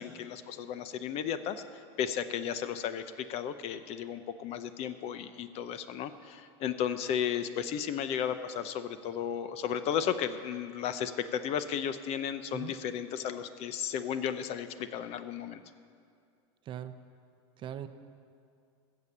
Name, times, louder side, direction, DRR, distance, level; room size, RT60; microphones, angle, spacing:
voice 1, 0.0-1.6 2.0-15.6, left 8 dB, 45° left, 12 dB, 0.7 m, -34 dB
voice 2, 17.6-17.9, right 10 dB, 35° right, 10 dB, 0.6 m, -40 dB
15.5 x 6.8 x 7.3 m, 2.3 s
supercardioid pair, 115°, 14 cm